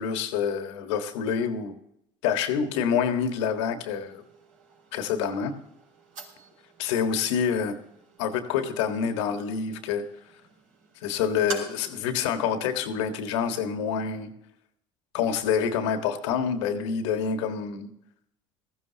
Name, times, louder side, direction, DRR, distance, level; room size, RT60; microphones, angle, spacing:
voice 1, 0.0-1.7 2.2-4.2 4.9-5.6 6.8-7.8 8.2-10.1 11.0-14.3 15.1-17.9, left 7 dB, 85° left, 1.7 m, -27 dB
sound 1, 3.8-12.0, right 4 dB, 65° right, 4.9 m, -46 dB
19.0 x 15.0 x 2.9 m
supercardioid pair, 85°, 15 cm